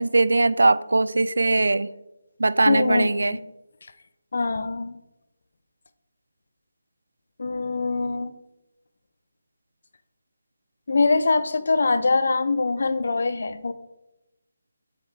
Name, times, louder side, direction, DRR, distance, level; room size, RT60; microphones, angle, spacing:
voice 1, 0.0-1.9 2.4-3.4, right 2 dB, 80° right, 17 dB, 0.3 m, -20 dB
voice 2, 2.7-3.4 4.3-5.0 7.4-8.3 10.9-13.7, left 3 dB, 65° left, 12 dB, 0.6 m, -23 dB
8.0 x 4.6 x 3.4 m, 0.95 s
figure-of-eight pair, 160°, 0 cm